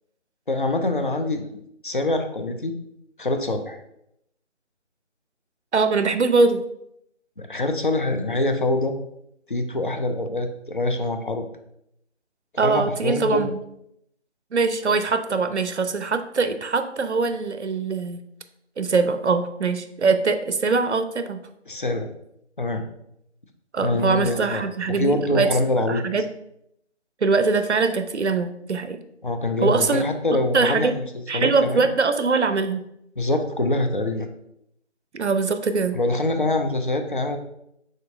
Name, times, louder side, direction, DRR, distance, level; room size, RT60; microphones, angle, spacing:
voice 1, 0.5-1.6 1.8-2.7 3.2-3.8 7.4-8.9 9.5-11.4 12.6-13.5 21.7-22.1 22.6-22.8 23.8-26.0 29.2-31.1 31.3-31.9 33.2-34.3 35.9-37.4, left 2 dB, 45° left, 6 dB, 0.5 m, -24 dB
voice 2, 5.7-6.6 12.6-13.6 14.5-18.2 18.8-21.4 23.7-25.5 25.9-26.2 27.2-29.0 29.6-30.0 30.5-30.9 31.3-32.8 35.1-36.0, right 4 dB, 70° right, 9 dB, 0.6 m, -22 dB
5.2 x 3.8 x 2.6 m, 0.77 s
figure-of-eight pair, 160°, 36 cm